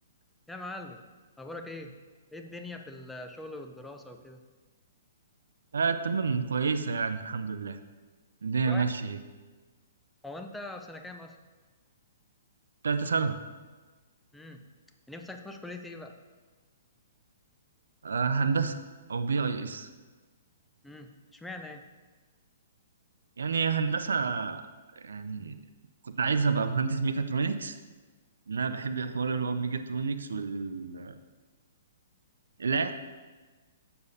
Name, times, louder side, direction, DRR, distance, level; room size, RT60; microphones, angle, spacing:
voice 1, 0.5-1.0 1.4-1.9 2.3-4.4 8.7-8.9 10.2-11.4 14.3-14.6 15.1-16.2 20.8-21.8, left 2 dB, 5° left, 4 dB, 0.6 m, -42 dB
voice 2, 5.7-7.8 8.4-9.2 12.8-13.3 18.0-18.8 19.1-19.9 23.4-24.6 25.0-25.6 26.0-27.8 28.5-31.1 32.6-32.9, right 5 dB, 85° right, 10 dB, 0.5 m, -29 dB
6.9 x 6.6 x 4.1 m, 1.3 s
hypercardioid pair, 145°, 0 cm